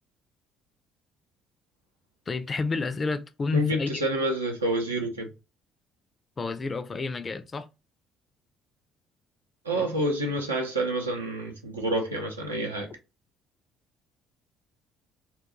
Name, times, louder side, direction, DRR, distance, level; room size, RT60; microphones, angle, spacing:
voice 1, 2.3-4.0 6.4-7.7 9.7-9.9, left 3 dB, 30° left, 0.4 m, -30 dB
voice 2, 3.5-5.3 9.6-12.9, right 1 dB, 85° right, 0.5 m, -28 dB
2.3 x 2.2 x 2.9 m
figure-of-eight pair, 50°, 0 cm